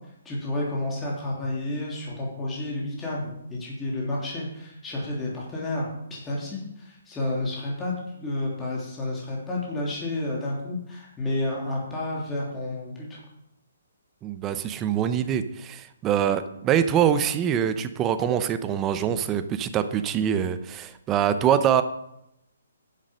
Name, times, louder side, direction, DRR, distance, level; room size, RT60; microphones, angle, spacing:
voice 1, 0.2-13.2, left 2 dB, 15° left, -5 dB, 3.2 m, -31 dB
voice 2, 14.2-21.8, right 9 dB, 20° right, 11 dB, 0.7 m, -24 dB
10.5 x 7.6 x 6.3 m, 0.83 s
figure-of-eight pair, 135°, 0 cm